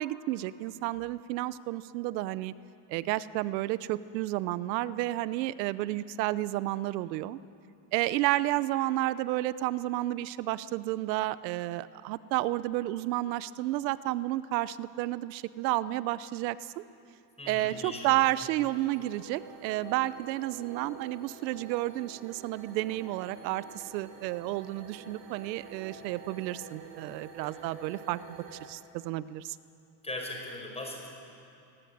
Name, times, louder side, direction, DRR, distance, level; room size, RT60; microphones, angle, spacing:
voice 1, 0.0-2.5 2.9-7.4 7.9-16.8 17.5-29.6, right 16 dB, 85° right, 16 dB, 1.0 m, -31 dB
voice 2, 17.4-18.5 27.4-27.6 30.0-31.1, left 1 dB, 10° left, 1 dB, 4.9 m, -40 dB
sound 1, 17.4-28.7, right 6 dB, 60° right, 4.2 m, -49 dB
21.5 x 19.0 x 9.6 m, 2.7 s
supercardioid pair, 110°, 49 cm